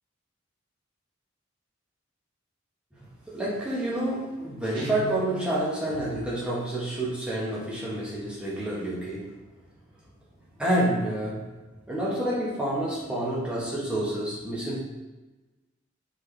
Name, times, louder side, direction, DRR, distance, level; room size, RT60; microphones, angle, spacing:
voice 1, 3.3-9.3 10.6-11.5 11.9-14.8, right 1 dB, 5° right, -7 dB, 1.2 m, -28 dB
Guitar, 4.7-5.5, right 1 dB, 25° right, 1.2 m, -38 dB
4.2 x 3.7 x 3.3 m, 1.1 s
head